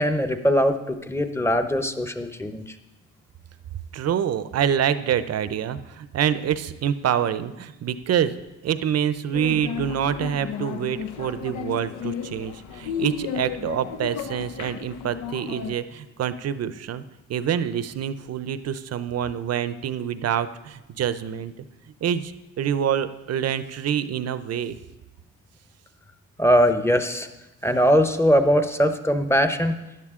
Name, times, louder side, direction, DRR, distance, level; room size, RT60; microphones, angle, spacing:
voice 1, 0.0-2.6 26.4-27.3 27.6-29.8, equal, 10° left, 8 dB, 0.9 m, -21 dB
voice 2, 3.9-8.4 8.6-17.0 17.3-21.5 22.0-24.8, right 9 dB, 55° right, 13 dB, 0.7 m, -26 dB
sound 1, 9.3-15.7, left 7 dB, 80° left, 0.8 m, -33 dB
13.5 x 10.5 x 3.7 m, 1.0 s
cardioid pair, 90°, 30 cm